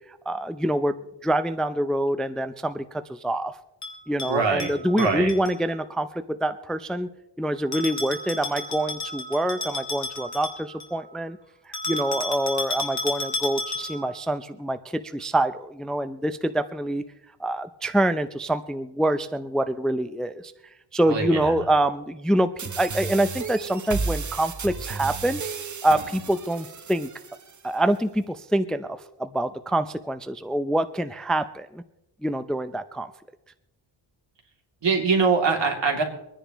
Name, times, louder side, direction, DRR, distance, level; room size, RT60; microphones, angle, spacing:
voice 1, 0.3-3.6 4.1-7.1 7.4-11.4 11.7-17.0 17.4-20.5 20.9-22.5 22.8-25.4 25.8-27.1 27.6-31.8 32.2-33.1, right 1 dB, ahead, 11 dB, 0.5 m, -26 dB
Bell, 3.8-5.5 7.7-11.0 11.7-14.1, left 2 dB, 35° left, 2.7 m, -32 dB
voice 2, 4.3-5.3 21.1-21.5 34.8-36.0, right 4 dB, 65° right, 2 dB, 2.8 m, -23 dB
sound 1, 22.6-27.6, right 5 dB, 40° right, 1.0 m, -33 dB
25.0 x 10.0 x 3.0 m, 0.93 s
wide cardioid pair, 105°, 47 cm